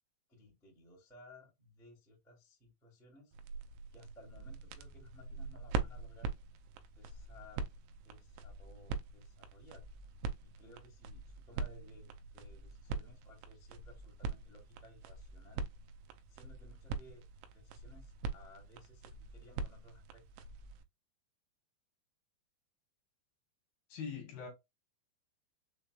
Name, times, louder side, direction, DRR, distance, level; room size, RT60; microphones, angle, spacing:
voice 1, 0.3-3.4 3.9-6.3 6.9-9.8 10.4-15.6 16.3-17.2 17.5-20.2 20.5-20.6, left 1 dB, ahead, 0.9 m, -59 dB
sound 1, 3.3-20.8, right 4 dB, 85° right, 3.0 m, -43 dB
voice 2, 23.9-24.5, left 6 dB, 65° left, 2.8 m, -42 dB
6.8 x 3.2 x 2.3 m
omnidirectional pair, 5.3 m